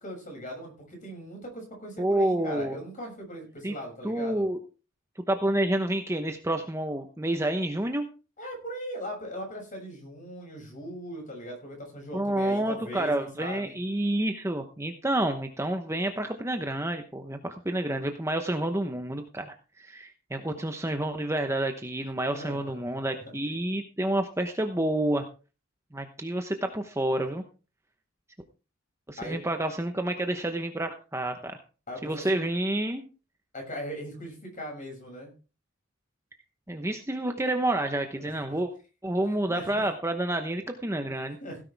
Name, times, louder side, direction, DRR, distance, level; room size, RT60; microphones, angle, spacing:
voice 1, 0.0-4.5 8.4-13.8 22.3-22.7 29.2-29.4 31.9-32.4 33.5-35.3 38.2-38.6 39.5-39.8 41.4-41.6, equal, 35° left, 1 dB, 6.7 m, -39 dB
voice 2, 2.0-2.8 3.6-3.7 4.0-4.6 5.3-8.0 12.1-25.3 25.9-27.4 29.1-31.6 32.0-33.0 36.7-38.7 39.0-41.4, right 1 dB, 15° right, 5 dB, 0.9 m, -29 dB
16.5 x 10.0 x 3.5 m, 0.34 s
head